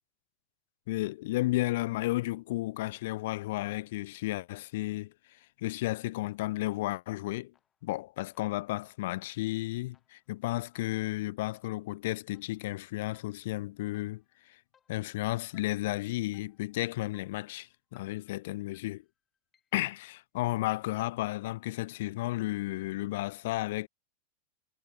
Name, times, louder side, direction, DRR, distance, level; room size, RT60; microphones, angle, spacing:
voice 1, 0.9-7.5 7.8-14.6 14.9-19.0 19.7-23.9, left 18 dB, 50° left, 0.6 m, -33 dB
sound 1, 7.5-8.0 8.3-19.9, left 8 dB, 20° left, 7.9 m, -72 dB
figure-of-eight pair, 90°, 0 cm